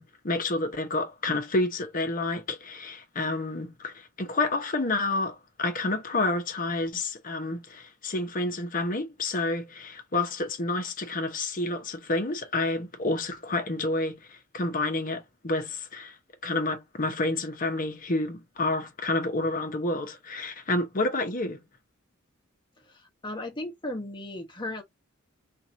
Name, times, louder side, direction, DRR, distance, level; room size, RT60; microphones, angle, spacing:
voice 1, 0.0-16.1 16.4-21.6, left 2 dB, 40° left, 0.9 m, -29 dB
voice 2, 22.9-24.8, left 1 dB, 20° left, 1.1 m, -36 dB
3.0 x 2.6 x 3.9 m
head